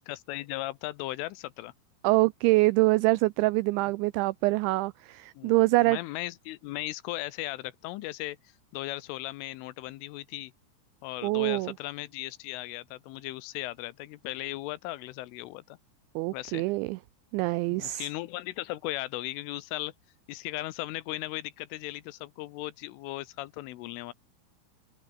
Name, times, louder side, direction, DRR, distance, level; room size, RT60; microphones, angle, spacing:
voice 1, 0.1-1.7 5.4-8.4 8.7-10.5 11.0-15.8 16.3-16.6 17.7-19.9 20.3-24.1, left 17 dB, 80° left, 3.3 m, -37 dB
voice 2, 2.0-6.0 11.2-11.7 16.2-17.0 17.3-18.1, right 21 dB, 90° right, 2.6 m, -25 dB
omnidirectional pair, 5.9 m